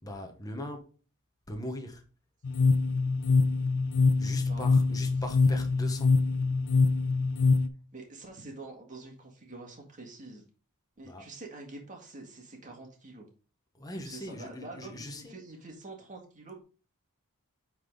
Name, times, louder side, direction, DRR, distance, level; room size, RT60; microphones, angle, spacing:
voice 1, 0.0-0.9 1.5-2.0 4.2-6.2 11.0-11.3 13.7-15.4, left 1 dB, 15° left, 1.0 m, -40 dB
sound 1, 2.4-7.7, left 4 dB, 65° left, 0.6 m, -24 dB
voice 2, 7.9-10.4 11.0-13.3 14.0-16.6, right 2 dB, 35° right, 1.8 m, -46 dB
8.4 x 4.0 x 3.7 m
head